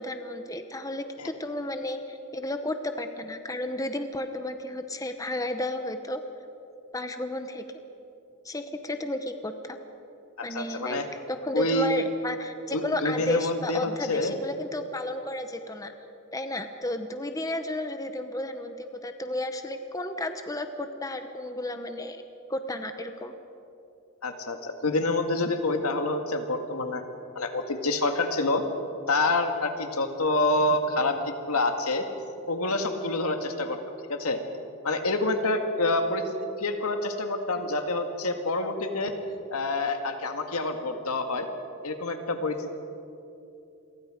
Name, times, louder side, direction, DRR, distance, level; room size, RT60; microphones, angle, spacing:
voice 1, 0.0-6.2 6.9-7.6 8.4-9.8 10.4-11.0 11.3-15.9 16.3-22.2 22.5-23.3, left 1 dB, 15° left, 7 dB, 0.9 m, -32 dB
voice 2, 10.5-11.1 11.5-11.9 12.7-14.3 24.2-27.0 27.4-28.6 29.1-32.0 32.5-33.8 34.1-34.4 34.8-36.2 36.6-39.1 39.5-41.5 41.8-42.7, left 2 dB, 80° left, 5 dB, 2.0 m, -27 dB
28.5 x 23.0 x 5.1 m, 2.8 s
head